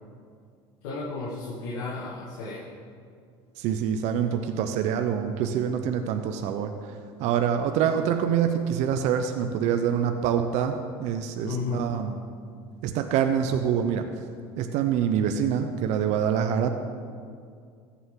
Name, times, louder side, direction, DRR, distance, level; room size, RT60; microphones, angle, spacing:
voice 1, 0.8-2.7 11.4-11.9, left 3 dB, 75° left, -6 dB, 1.9 m, -33 dB
voice 2, 3.6-6.9 7.2-12.1 12.8-14.0 14.6-16.8, right 8 dB, 65° right, 7 dB, 0.7 m, -25 dB
14.5 x 8.6 x 3.8 m, 2.2 s
supercardioid pair, 90°, 13 cm